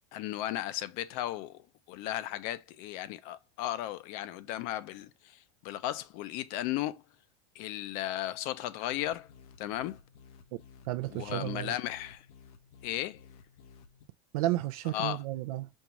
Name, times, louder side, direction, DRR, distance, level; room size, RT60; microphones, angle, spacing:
voice 1, 0.1-1.6 1.9-7.0 7.6-9.3 9.6-10.0 11.1-12.2 12.8-13.2 14.9-15.2, left 13 dB, 50° left, 0.5 m, -35 dB
sound 1, 8.9-14.0, left 5 dB, 80° left, 0.8 m, -56 dB
voice 2, 10.8-11.8 14.3-15.7, right 16 dB, 75° right, 0.4 m, -32 dB
5.3 x 2.4 x 2.9 m
supercardioid pair, 145°, 19 cm